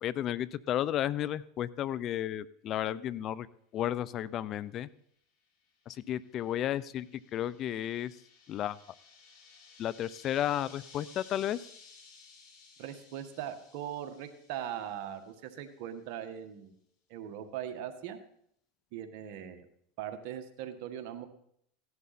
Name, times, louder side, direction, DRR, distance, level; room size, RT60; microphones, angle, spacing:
voice 1, 0.0-3.5 3.7-4.9 5.9-8.2 8.5-8.8 9.8-11.6, left 11 dB, 40° left, 19 dB, 0.6 m, -33 dB
sound 1, 5.7-15.5, left 4 dB, 60° left, 4.0 m, -57 dB
voice 2, 12.8-16.8 17.1-18.2 18.9-19.7 20.0-21.2, right 10 dB, 60° right, 7 dB, 1.7 m, -40 dB
16.0 x 11.0 x 4.3 m, 0.71 s
supercardioid pair, 110°, 0 cm